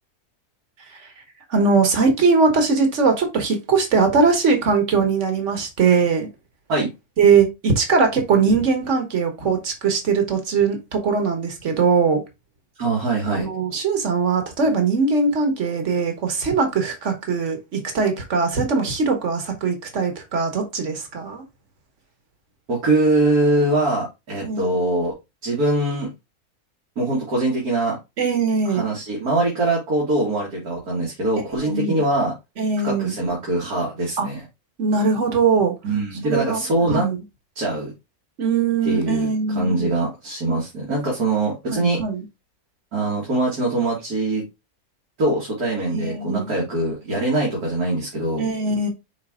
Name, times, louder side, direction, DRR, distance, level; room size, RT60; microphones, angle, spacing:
voice 1, 1.5-6.3 7.2-12.2 13.3-21.4 24.4-24.7 28.2-28.9 31.5-32.0 32.6-33.1 34.2-34.3 34.8-35.7 36.2-37.2 38.4-39.9 41.7-42.2 45.9-46.5 48.4-48.9, right 4 dB, 55° right, 1.8 m, -21 dB
voice 2, 12.8-13.5 22.7-25.1 25.4-26.1 27.0-28.0 28.7-32.3 32.8-34.4 35.8-37.1 37.6-37.9 38.8-39.3 39.6-42.0 42.9-44.4 45.2-48.5, right 2 dB, 80° right, 2.7 m, -22 dB
5.9 x 4.3 x 3.7 m
omnidirectional pair, 1.6 m